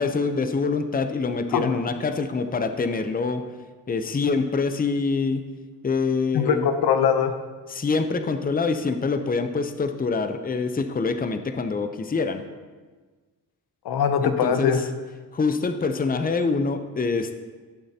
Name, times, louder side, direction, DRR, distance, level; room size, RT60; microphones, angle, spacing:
voice 1, 0.0-3.4 3.9-5.4 5.8-6.7 7.7-12.4 14.2-14.7 15.3-17.3, left 4 dB, 25° left, 8 dB, 0.7 m, -25 dB
voice 2, 6.3-7.3 13.8-14.8, left 7 dB, 80° left, 8 dB, 0.8 m, -21 dB
15.0 x 7.3 x 2.9 m, 1.4 s
cardioid pair, 70°, 37 cm